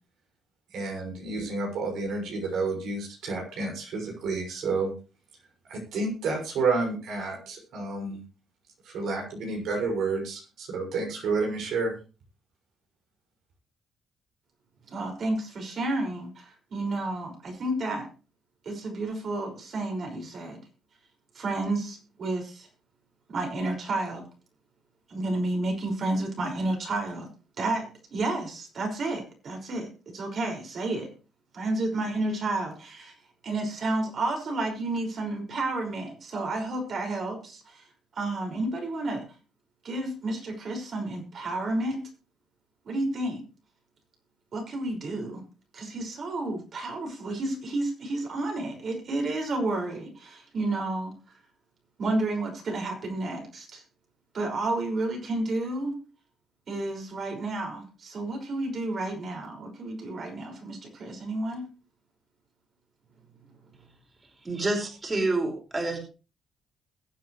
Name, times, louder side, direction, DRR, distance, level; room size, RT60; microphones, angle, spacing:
voice 1, 0.7-4.9 5.7-8.2 8.8-12.0, right 3 dB, 80° right, 0 dB, 6.2 m, -30 dB
voice 2, 14.9-18.1 18.6-20.6 21.3-22.7 23.3-24.2 25.1-27.3 27.6-31.1 31.5-33.2 33.4-37.9 38.2-39.2 39.8-42.0 42.8-43.4 44.5-45.4 45.7-51.1 52.0-53.8 54.3-56.0 56.7-61.7, right 2 dB, 55° right, 2 dB, 5.7 m, -31 dB
voice 3, 64.4-66.0, right 2 dB, 25° right, 2 dB, 4.8 m, -28 dB
21.5 x 8.2 x 3.2 m, 0.33 s
cardioid pair, 90°, 0 cm